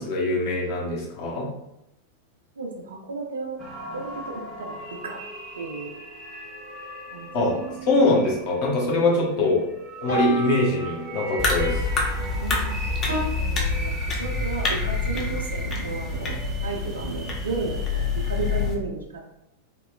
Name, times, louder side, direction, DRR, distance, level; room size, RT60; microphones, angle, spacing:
voice 1, 0.0-1.5 7.3-7.5 7.9-9.6 10.0-11.8, left 2 dB, 45° left, -4 dB, 0.8 m, -23 dB
voice 2, 2.6-3.6 3.9-5.2 5.5-6.0 7.1-7.7 9.0-9.2 12.2-12.7 13.3-19.3, right 3 dB, 70° right, 2 dB, 0.4 m, -34 dB
sound 1, 3.6-18.7, right 1 dB, 25° right, 0.6 m, -37 dB
sound 2, 5.8-5.9 10.1-13.2, equal, 90° left, 0.9 m, -31 dB
sound 3, 11.4-18.8, left 3 dB, 25° left, 0.5 m, -27 dB
2.9 x 2.1 x 2.3 m, 0.86 s
figure-of-eight pair, 90°, 0 cm